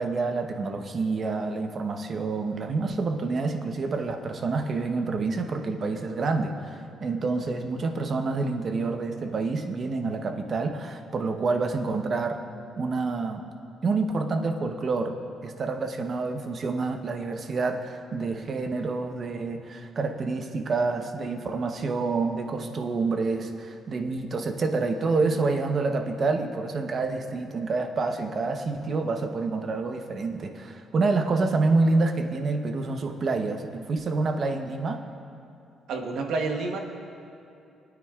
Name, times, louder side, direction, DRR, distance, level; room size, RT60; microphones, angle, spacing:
voice 1, 0.0-12.4 12.8-13.4 13.8-15.2 15.4-35.0, right 3 dB, 50° right, 5 dB, 0.9 m, -28 dB
voice 2, 35.9-36.8, right 3 dB, 80° right, 3 dB, 1.1 m, -29 dB
22.0 x 9.3 x 2.4 m, 2.6 s
cardioid pair, 90°, 0 cm